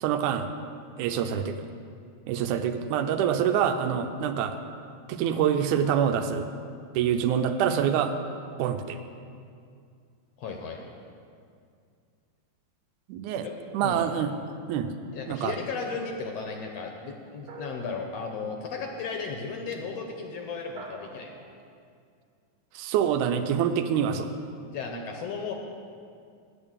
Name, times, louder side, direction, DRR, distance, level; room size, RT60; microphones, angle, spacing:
voice 1, 0.0-0.5 1.0-1.6 2.3-4.6 5.1-6.5 7.0-8.1 8.6-9.0 13.1-13.5 13.7-14.3 14.7-14.9 15.3-15.6 22.8-24.3, right 8 dB, 80° right, 8 dB, 2.1 m, -26 dB
voice 2, 10.4-10.8 13.4-13.5 13.8-14.1 15.1-21.4 24.7-25.5, left 5 dB, 70° left, 2 dB, 1.7 m, -35 dB
sound 1, 17.5-18.5 20.8-21.6, right 2 dB, 55° right, 1.9 m, -45 dB
8.9 x 6.9 x 8.7 m, 2.3 s
omnidirectional pair, 3.5 m